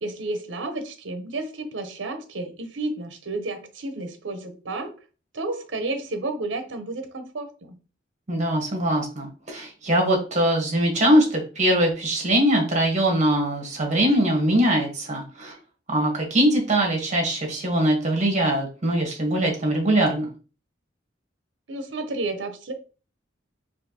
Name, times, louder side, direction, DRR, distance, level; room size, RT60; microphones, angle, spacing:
voice 1, 0.0-4.9 5.3-7.8 21.7-22.7, right 2 dB, 75° right, 0.7 m, -31 dB
voice 2, 8.3-15.5 15.9-20.3, right 1 dB, 40° right, 1.3 m, -22 dB
4.4 x 2.6 x 2.8 m
head